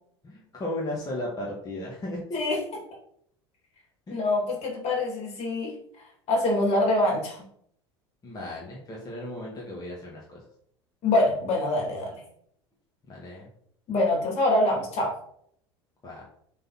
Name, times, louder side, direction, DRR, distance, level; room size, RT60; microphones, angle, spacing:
voice 1, 0.2-2.6 4.1-4.2 8.2-10.4 13.1-13.5 16.0-16.2, left 1 dB, 25° left, -4 dB, 2.0 m, -35 dB
voice 2, 4.1-5.7 6.3-7.4 11.0-12.1 13.9-15.1, left 2 dB, 50° left, -1 dB, 3.0 m, -25 dB
7.6 x 4.1 x 4.3 m, 0.67 s
hypercardioid pair, 75°, 14 cm